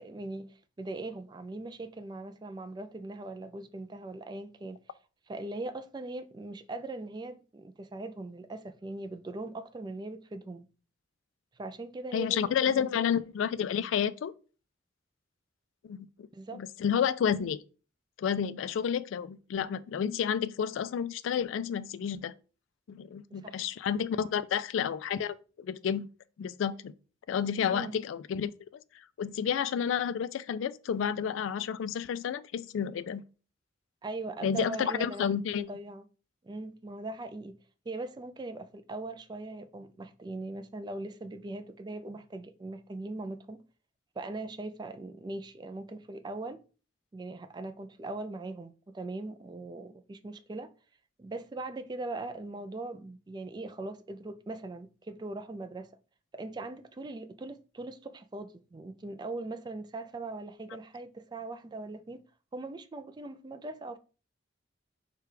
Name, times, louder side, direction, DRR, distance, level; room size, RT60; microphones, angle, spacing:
voice 1, 0.0-4.8 5.3-10.7 11.6-13.0 16.3-16.6 23.3-23.6 27.7-28.0 34.0-36.0 36.4-37.5 37.9-43.6 44.2-46.6 47.1-50.7 51.2-55.9 56.3-62.2 62.5-64.0, right 2 dB, 20° right, 0.3 m, -40 dB
voice 2, 12.1-14.3 15.9-16.3 16.5-17.6 18.2-22.3 22.9-26.1 26.4-26.9 27.3-28.8 29.2-33.2 34.4-35.7, left 8 dB, 85° left, 0.3 m, -30 dB
4.6 x 2.3 x 4.8 m
head